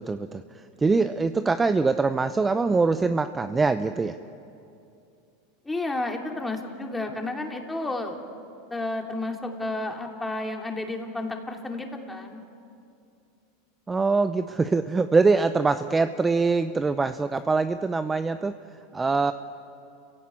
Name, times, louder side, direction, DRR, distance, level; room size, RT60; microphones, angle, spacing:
voice 1, 0.0-4.2 13.9-18.6 18.9-19.3, right 4 dB, 15° right, 10 dB, 0.6 m, -23 dB
voice 2, 5.6-8.2 8.7-12.4, left 2 dB, 10° left, 2 dB, 2.9 m, -31 dB
29.5 x 16.5 x 8.7 m, 2.6 s
supercardioid pair, 115°, 0 cm